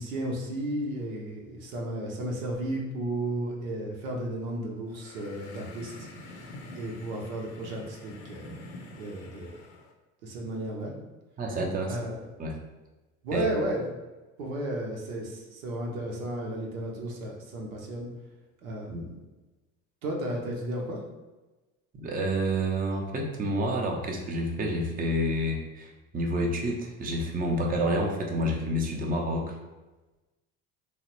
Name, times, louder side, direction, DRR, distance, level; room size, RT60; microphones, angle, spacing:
voice 1, 0.0-8.6 9.0-9.5 10.2-10.9 11.9-12.2 13.2-13.9 14.4-18.1 18.6-19.0 20.0-21.0, right 1 dB, 80° right, -1 dB, 0.7 m, -33 dB
sound 1, 4.9-9.9, left 2 dB, 70° left, 0.6 m, -46 dB
voice 2, 11.4-12.0 12.4-12.6 13.3-13.5 18.9-19.0 21.9-29.6, equal, 20° right, 1 dB, 0.6 m, -29 dB
3.0 x 2.0 x 2.9 m, 1.2 s
hypercardioid pair, 70°, 41 cm